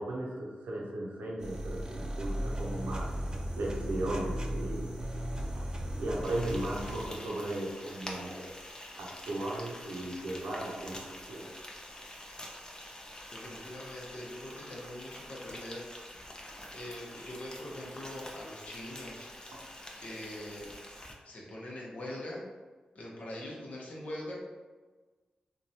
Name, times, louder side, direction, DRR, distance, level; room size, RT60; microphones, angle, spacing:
voice 1, 0.0-3.2 3.6-5.0 5.6-5.7 6.0-8.6 9.0-11.5 19.5-19.7, right 1 dB, 85° right, -3 dB, 0.6 m, -36 dB
sound 1, 1.4-7.1, right 1 dB, 30° right, 0.5 m, -36 dB
Frying (food), 6.2-21.1, left 1 dB, 25° left, 0.6 m, -47 dB
voice 2, 13.3-15.8 16.7-19.3 19.9-20.8 21.2-22.4 22.9-24.3, left 1 dB, 60° left, -4 dB, 0.9 m, -42 dB
3.0 x 2.2 x 2.7 m, 1.3 s
cardioid pair, 45°, 3 cm